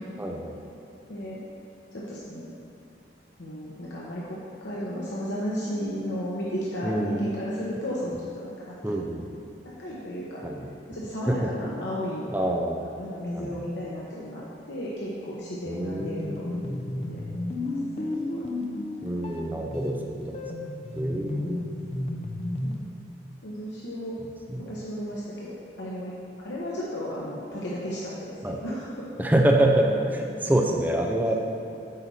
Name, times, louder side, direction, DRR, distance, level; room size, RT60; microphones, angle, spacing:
voice 1, 0.2-0.5 6.8-7.2 8.8-9.3 10.4-10.7 11.3-11.5 12.3-12.8 13.3-13.5 15.7-16.7 19.0-20.4 20.9-21.6 24.5-24.7 28.4-28.6 29.2-31.4, right 1 dB, 10° right, 1 dB, 0.5 m, -26 dB
voice 2, 1.1-1.4 1.9-2.5 3.4-8.5 8.9-9.0 9.6-10.4 10.9-12.2 13.0-17.2 17.6-18.5 19.9-20.1 21.3-21.8 22.6-22.8 23.4-24.2 24.6-26.1 26.4-29.1 29.7-30.0 30.4-30.6, equal, 90° left, -6 dB, 1.0 m, -34 dB
sound 1, 16.0-22.8, left 1 dB, 35° left, 0.6 m, -33 dB
9.0 x 4.2 x 5.5 m, 2.7 s
head